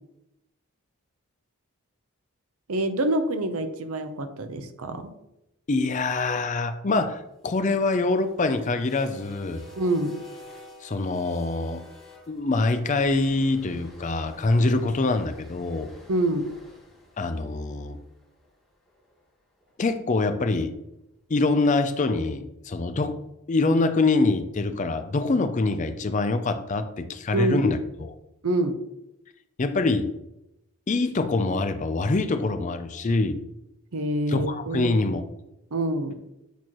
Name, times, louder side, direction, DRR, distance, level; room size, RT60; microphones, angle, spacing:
voice 1, 2.7-5.1 9.8-10.1 16.1-16.5 27.3-27.7 28.4-28.8 33.9-34.9 35.7-36.1, right 1 dB, 75° right, 9 dB, 0.7 m, -26 dB
voice 2, 5.7-9.7 10.8-11.8 12.3-15.9 17.2-18.0 19.8-20.7 21.3-23.2 23.5-28.2 29.6-30.1 30.9-33.4 34.3-35.2, left 3 dB, 35° left, 9 dB, 0.4 m, -24 dB
sound 1, 7.5-19.7, left 1 dB, ahead, 2.4 m, -50 dB
8.3 x 4.4 x 3.0 m, 0.87 s
head